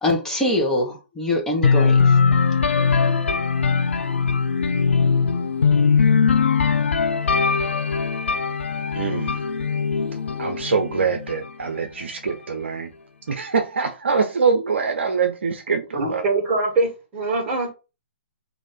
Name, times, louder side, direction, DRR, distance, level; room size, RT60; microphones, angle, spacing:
voice 1, 0.0-2.2, left 1 dB, 5° left, 1.2 m, -23 dB
sound 1, 1.6-11.4, left 5 dB, 75° left, 0.5 m, -20 dB
voice 2, 8.9-9.4 10.4-12.9 13.3-16.2, right 5 dB, 70° right, 0.7 m, -24 dB
voice 3, 15.9-17.7, right 3 dB, 30° right, 1.8 m, -23 dB
3.2 x 2.7 x 4.2 m
figure-of-eight pair, 125°, 6 cm